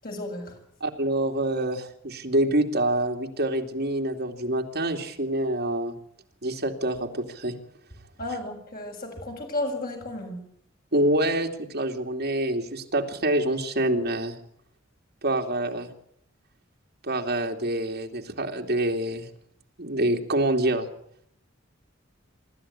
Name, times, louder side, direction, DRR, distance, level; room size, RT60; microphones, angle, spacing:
voice 1, 0.0-0.6 8.2-10.4, left 1 dB, 50° left, 2 dB, 7.6 m, -33 dB
voice 2, 0.8-5.9 6.4-7.5 10.9-14.4 15.2-15.9 17.0-19.3 19.8-20.9, right 1 dB, 55° right, 3 dB, 2.8 m, -26 dB
24.0 x 13.5 x 9.9 m, 0.69 s
head